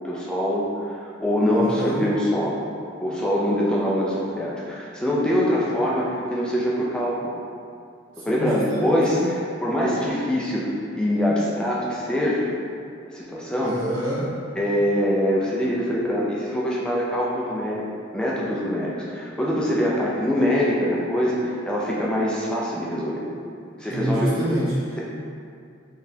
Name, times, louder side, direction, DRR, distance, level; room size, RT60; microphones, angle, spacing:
voice 1, 0.0-2.6 3.0-7.3 8.2-12.5 13.1-13.8 14.6-17.8 18.1-23.3 23.8-24.3, equal, 5° left, -6 dB, 0.4 m, -24 dB
voice 2, 1.5-2.1 8.2-9.3 13.6-14.3 23.9-25.0, right 1 dB, 90° right, -7 dB, 1.1 m, -27 dB
4.0 x 3.4 x 2.7 m, 2.4 s
head